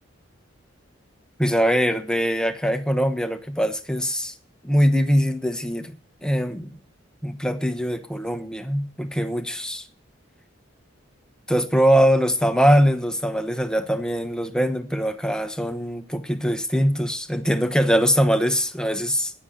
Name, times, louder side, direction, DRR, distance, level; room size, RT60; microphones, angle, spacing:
voice 1, 1.4-4.3 4.6-5.9 6.2-6.8 7.2-9.8 11.5-19.3, equal, 5° left, 1.2 m, -22 dB
9.9 x 9.6 x 8.0 m
head